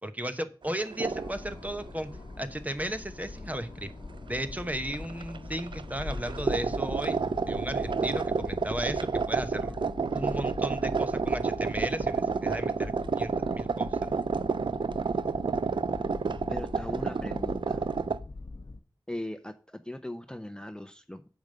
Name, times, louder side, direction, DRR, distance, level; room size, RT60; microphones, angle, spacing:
voice 1, 0.0-2.1 2.4-3.9 4.3-9.8 10.1-14.0, right 1 dB, 20° right, 9 dB, 1.0 m, -35 dB
sound 1, 0.7-1.4 1.6-1.9 3.2-3.3 4.4-4.6 4.9-18.2, right 5 dB, 80° right, 0.4 m, -30 dB
sound 2, 1.0-18.8, left 3 dB, 60° left, 0.8 m, -42 dB
voice 2, 16.5-17.9 19.1-21.3, left 1 dB, 10° left, 9 dB, 0.7 m, -39 dB
8.6 x 5.4 x 6.7 m, 0.38 s
wide cardioid pair, 50°, 8 cm